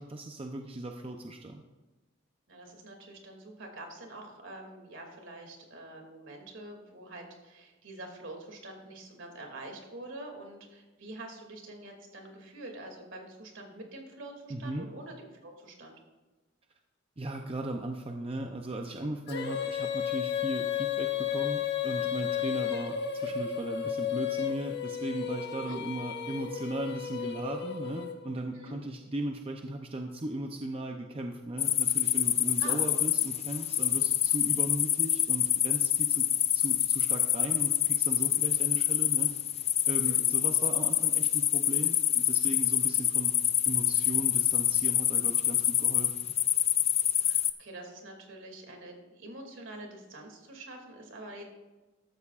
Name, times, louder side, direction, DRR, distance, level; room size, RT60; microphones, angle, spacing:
voice 1, 0.0-1.6 14.5-14.9 17.2-43.3 43.7-46.1, right 1 dB, 30° right, 3 dB, 0.6 m, -37 dB
voice 2, 2.5-16.0 25.6-25.8 28.5-28.8 32.6-32.8 40.0-40.2 47.2-51.4, right 2 dB, 65° right, 2 dB, 2.5 m, -46 dB
Female singing, 19.3-28.4, left 9 dB, 55° left, 1.2 m, -33 dB
sound 1, 31.6-47.5, left 11 dB, 30° left, 0.4 m, -26 dB
14.0 x 13.0 x 2.5 m, 1.2 s
head